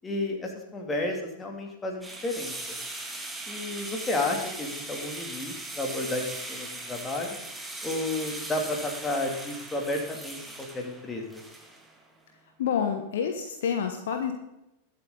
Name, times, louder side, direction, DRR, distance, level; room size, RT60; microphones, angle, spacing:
voice 1, 0.0-2.5 3.5-7.4 7.8-11.4, left 2 dB, 15° left, 1 dB, 2.8 m, -32 dB
sound 1, 2.0-12.0, right 2 dB, 5° right, 1.9 m, -39 dB
voice 2, 12.6-14.3, left 7 dB, 60° left, 6 dB, 1.3 m, -28 dB
21.0 x 8.2 x 4.0 m, 0.89 s
figure-of-eight pair, 90°, 0 cm